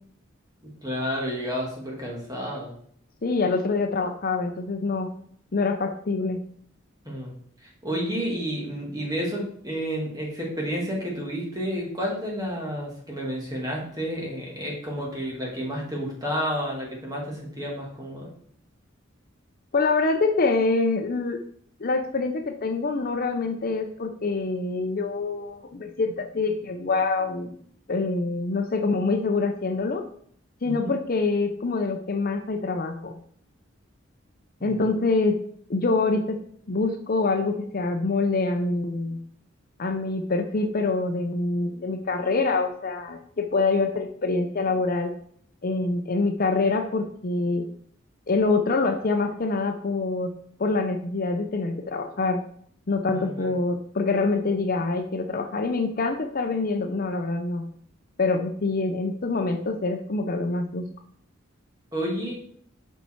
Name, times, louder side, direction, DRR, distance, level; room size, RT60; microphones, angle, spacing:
voice 1, 0.8-2.7 7.0-7.3 7.6-18.3 30.6-30.9 34.6-34.8 53.1-53.5 61.9-62.3, equal, 20° right, -3 dB, 2.3 m, -31 dB
voice 2, 3.2-5.1 5.5-6.4 19.7-21.4 21.8-27.6 27.9-30.0 30.6-33.2 34.6-35.4 35.7-36.4 36.7-39.2 39.8-45.1 45.6-47.7 48.3-50.3 50.6-52.4 52.9-57.6 58.2-60.8, left 3 dB, 45° left, 5 dB, 0.6 m, -25 dB
6.9 x 5.6 x 4.5 m, 0.62 s
head